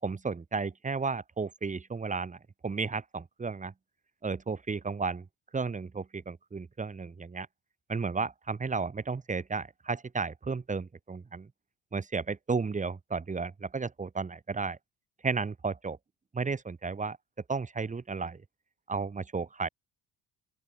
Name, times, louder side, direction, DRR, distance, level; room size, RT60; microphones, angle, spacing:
voice 1, 0.0-2.4 2.6-3.7 4.2-5.2 5.5-7.5 7.9-11.5 11.9-14.8 15.2-16.0 16.3-17.2 17.5-18.4 18.9-19.7, right 4 dB, 20° right, 4.6 m, -33 dB
open air
cardioid pair, 170°, 39 cm